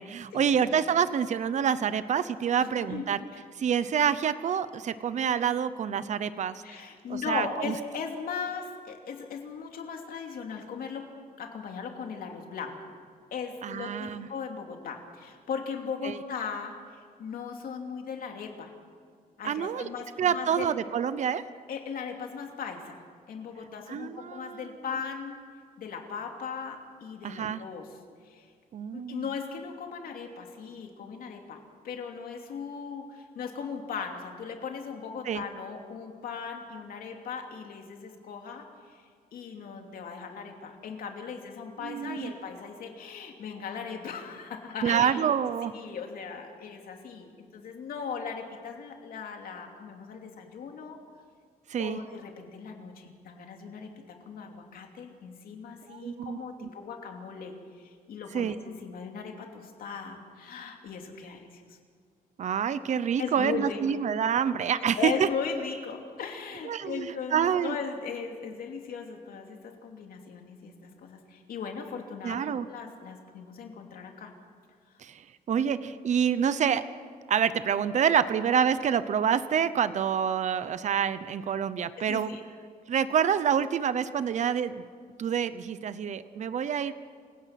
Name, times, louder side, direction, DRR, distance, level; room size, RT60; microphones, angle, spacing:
voice 1, 0.0-3.2 3.6-6.6 7.1-7.7 13.6-14.3 16.0-16.2 19.4-19.9 20.2-21.4 23.9-24.6 27.2-27.6 28.7-29.2 35.2-35.4 41.8-42.3 44.8-45.7 51.7-52.0 55.9-56.7 58.3-58.5 62.4-65.3 66.6-67.7 72.2-72.7 75.0-75.2 75.5-76.8 77.3-82.4 82.9-84.8 85.2-86.9, right 8 dB, 50° right, 14 dB, 0.8 m, -27 dB
voice 2, 2.6-3.0 3.3-3.4 6.6-11.1 11.4-12.9 13.3-18.7 19.4-20.7 21.7-23.0 23.3-25.4 25.8-27.9 28.2-28.5 28.9-31.6 31.8-39.0 39.3-45.3 45.7-51.0 51.8-61.8 63.2-63.8 64.8-74.3 82.0-82.4, left 6 dB, 70° left, 3 dB, 2.9 m, -38 dB
28.0 x 16.5 x 6.0 m, 2.1 s
cardioid pair, 140°, 15 cm